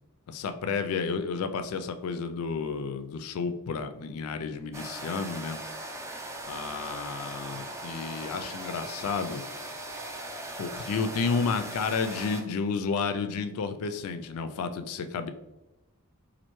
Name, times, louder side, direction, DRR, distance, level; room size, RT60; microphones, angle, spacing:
voice 1, 0.3-5.6 6.5-9.4 10.6-15.3, left 5 dB, 75° left, 9 dB, 0.4 m, -31 dB
sound 1, 4.7-12.4, right 1 dB, 15° right, 0.3 m, -39 dB
4.3 x 2.5 x 3.0 m, 0.97 s
head